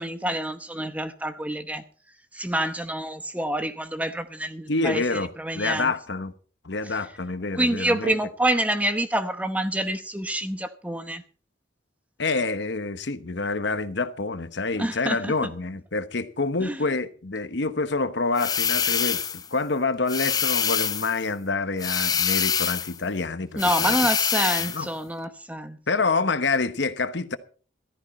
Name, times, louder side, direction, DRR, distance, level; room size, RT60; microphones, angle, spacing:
voice 1, 0.0-1.8 2.3-5.9 7.6-11.2 14.8-15.5 16.6-16.8 23.6-25.8, right 1 dB, 5° right, 0.9 m, -27 dB
voice 2, 4.7-5.3 5.5-6.3 6.6-8.1 12.2-24.0 24.6-24.9 25.9-27.4, left 3 dB, 65° left, 1.0 m, -27 dB
sound 1, 18.4-19.5 20.1-21.2 21.8-23.0 23.6-24.8, left 7 dB, 20° left, 0.6 m, -25 dB
14.5 x 14.0 x 4.3 m
head